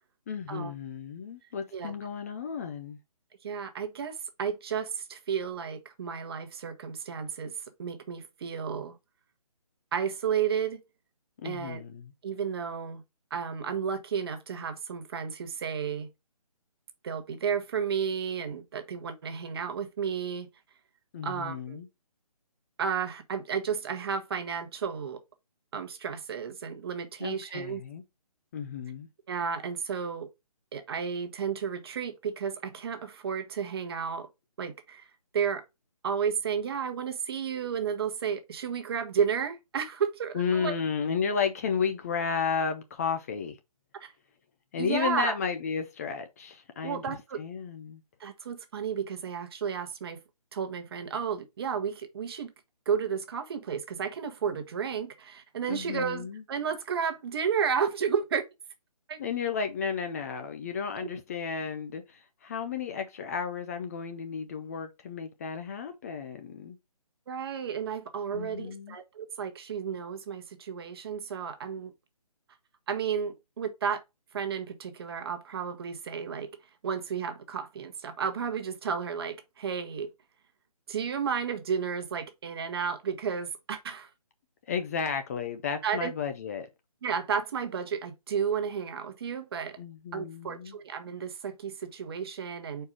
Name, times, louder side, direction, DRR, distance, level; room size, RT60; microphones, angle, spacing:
voice 1, 0.3-3.0 11.4-12.1 21.1-21.9 27.2-28.0 28.5-29.1 40.3-43.6 44.7-48.0 55.7-56.4 59.2-66.8 68.3-69.0 84.7-86.7 89.8-90.8, left 6 dB, 25° left, 0.6 m, -33 dB
voice 2, 3.4-9.0 9.9-10.8 11.4-11.8 12.2-13.0 13.3-16.1 17.0-20.5 21.2-21.8 22.8-25.2 25.7-27.8 29.3-30.3 30.7-34.3 34.6-35.0 35.3-35.6 36.0-40.8 44.0-44.1 44.8-45.4 46.8-47.4 48.2-50.2 50.5-52.5 52.9-58.4 59.1-59.2 61.0-61.1 67.3-71.9 72.9-74.0 74.3-76.5 76.8-80.1 80.9-84.1 85.8-86.1 87.0-89.8 90.1-92.9, right 7 dB, 40° right, 1.1 m, -32 dB
4.7 x 4.5 x 4.9 m
figure-of-eight pair, 150°, 20 cm